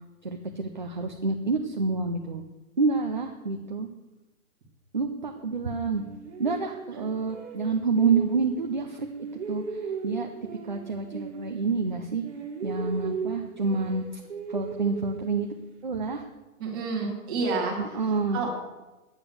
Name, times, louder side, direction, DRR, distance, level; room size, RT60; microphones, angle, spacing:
voice 1, 0.2-2.4 2.8-3.9 4.9-6.0 6.4-9.1 9.5-9.6 10.0-10.3 10.7-12.2 12.6-14.0 14.5-15.5 15.8-16.2 17.8-18.5, right 4 dB, 35° right, 4 dB, 0.5 m, -28 dB
sound 1, 6.0-8.7 9.0-12.0 12.2-15.8, right 5 dB, 50° right, 1.7 m, -37 dB
voice 2, 16.6-18.0 18.3-18.5, right 4 dB, 15° right, -1 dB, 1.6 m, -29 dB
9.9 x 8.9 x 6.8 m, 1.1 s
hypercardioid pair, 175°, 43 cm